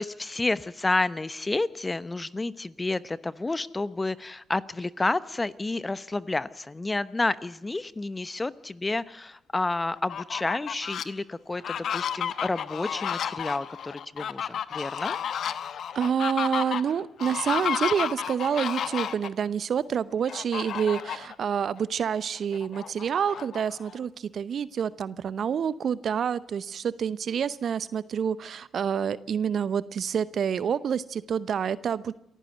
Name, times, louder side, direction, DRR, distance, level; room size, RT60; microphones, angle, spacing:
voice 1, 0.0-15.2, left 2 dB, 20° left, 16 dB, 1.0 m, -30 dB
Fowl, 10.0-11.0 11.5-19.3 20.3-21.3 21.8-21.9 22.2-24.0, left 8 dB, 55° left, 0.9 m, -32 dB
voice 2, 15.9-32.1, right 7 dB, 50° right, 17 dB, 0.7 m, -28 dB
27.5 x 15.0 x 8.0 m, 0.80 s
hypercardioid pair, 45°, 0 cm